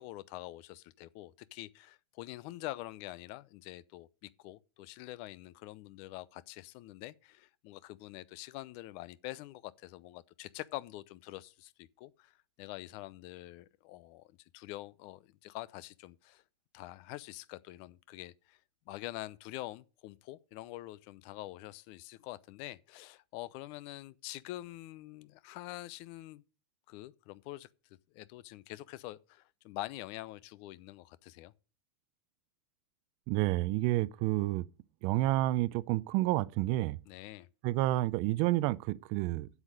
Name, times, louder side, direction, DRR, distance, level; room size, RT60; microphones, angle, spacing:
voice 1, 0.0-16.4 16.7-18.6 18.9-26.4 26.9-27.7 28.1-31.5 37.1-37.5, left 17 dB, 45° left, 0.6 m, -45 dB
voice 2, 33.3-34.6 35.0-37.0 37.6-39.5, right 17 dB, 45° right, 0.5 m, -29 dB
8.0 x 7.3 x 6.5 m
hypercardioid pair, 115°, 14 cm